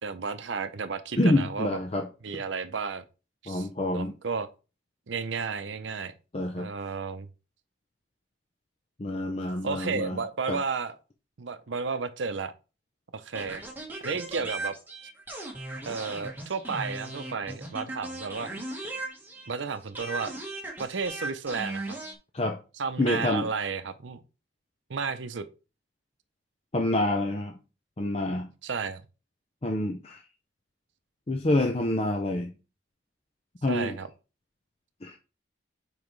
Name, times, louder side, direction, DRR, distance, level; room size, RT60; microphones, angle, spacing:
voice 1, 0.0-1.8 2.2-3.0 3.4-4.5 5.1-6.1 6.6-7.3 9.6-11.0 11.4-12.5 13.1-13.6 14.0-14.7 15.9-18.5 19.5-20.3 20.8-22.0 22.8-24.2 24.9-25.4 28.6-29.0 33.7-34.1, right 5 dB, 85° right, 0.6 m, -32 dB
voice 2, 1.2-2.1 3.5-4.1 6.3-6.7 9.0-10.2 10.5-10.6 22.3-22.6 23.0-23.5 26.7-27.5 28.0-28.5 29.6-30.2 31.3-32.5 33.6-34.0 35.0-35.2, left 1 dB, 35° left, 0.6 m, -27 dB
sound 1, 13.3-19.6 19.9-22.1, right 2 dB, 10° right, 1.4 m, -37 dB
7.3 x 4.8 x 3.2 m
head